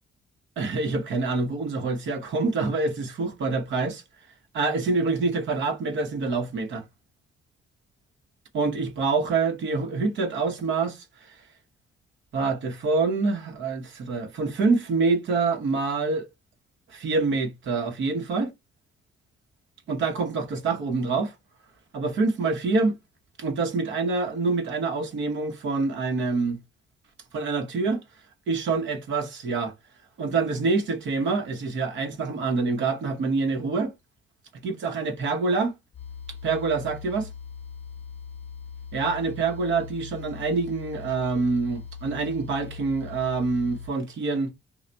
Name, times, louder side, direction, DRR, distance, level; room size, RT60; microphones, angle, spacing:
voice 1, 0.6-4.0 4.5-6.8 8.5-11.4 12.3-16.3 16.9-18.5 19.9-21.3 21.9-22.9 23.4-26.6 27.3-28.0 28.5-29.7 30.2-33.9 34.6-35.8 36.4-37.3 38.9-44.5, right 4 dB, 70° right, 1.1 m, -26 dB
sound 1, 35.9-43.9, left 6 dB, 30° left, 0.9 m, -40 dB
3.3 x 2.4 x 4.0 m
cardioid pair, 90°, 20 cm